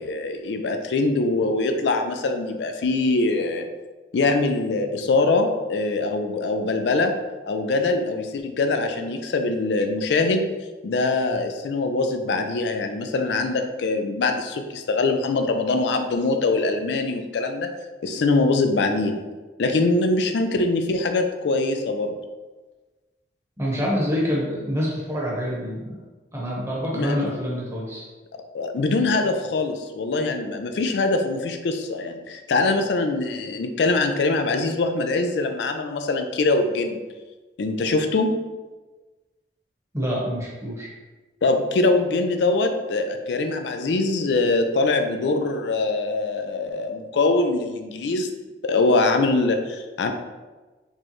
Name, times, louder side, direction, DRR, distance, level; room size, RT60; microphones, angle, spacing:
voice 1, 0.0-3.7 4.1-7.1 7.5-10.5 10.8-17.7 18.0-19.2 19.6-22.1 26.9-27.4 28.3-37.0 37.6-38.4 41.4-48.3 48.6-50.1, left 3 dB, 80° left, 6 dB, 0.4 m, -23 dB
voice 2, 23.6-25.9 26.3-28.0 39.9-40.9, equal, 15° right, -5 dB, 1.0 m, -26 dB
4.3 x 3.2 x 3.0 m, 1.2 s
head